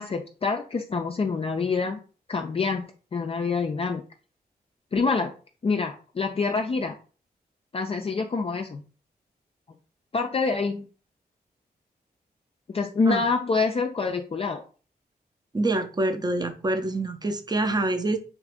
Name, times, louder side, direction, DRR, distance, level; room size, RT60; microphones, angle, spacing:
voice 1, 0.0-2.0 2.3-4.0 4.9-5.3 5.6-7.0 7.7-8.8 10.1-10.9 12.7-14.6, left 4 dB, 35° left, 0.4 m, -26 dB
voice 2, 15.5-18.2, right 2 dB, 25° right, 0.6 m, -26 dB
2.9 x 2.4 x 3.5 m
cardioid pair, 50°, 17 cm